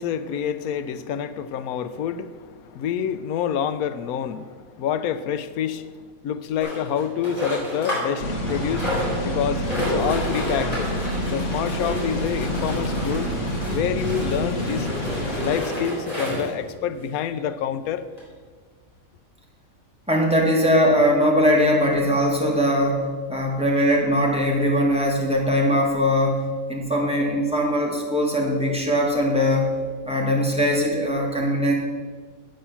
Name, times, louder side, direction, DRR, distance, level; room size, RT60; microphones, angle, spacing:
voice 1, 0.0-8.9 9.2-10.9 11.3-13.3 13.7-14.9 15.4-18.0, left 8 dB, 90° left, 13 dB, 1.1 m, -27 dB
sound 1, 6.6-8.2 8.5-16.6 17.3-17.4 17.6-17.7 18.2-18.3, equal, 25° left, 4.2 m, -30 dB
sound 2, 8.2-15.6, equal, 60° left, 1.8 m, -27 dB
voice 2, 20.1-29.7 30.0-31.7, equal, 5° right, -2 dB, 1.9 m, -21 dB
8.6 x 7.9 x 6.9 m, 1.5 s
omnidirectional pair, 1.5 m